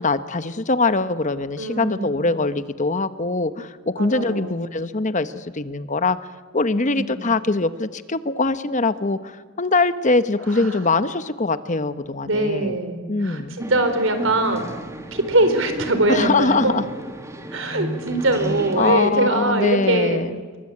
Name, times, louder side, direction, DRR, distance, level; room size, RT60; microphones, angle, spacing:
voice 1, 0.0-6.2 6.5-12.8 13.1-13.6 16.1-16.9 18.8-20.4, left 3 dB, 35° left, 12 dB, 1.0 m, -22 dB
voice 2, 1.6-2.3 4.0-4.6 6.8-7.2 10.5-10.8 12.2-14.7 15.1-16.7 17.5-20.3, right 2 dB, 70° right, 8 dB, 4.3 m, -22 dB
sound 1, 13.6-19.0, equal, 15° right, 2.2 m, -33 dB
27.5 x 23.5 x 8.6 m, 1.5 s
head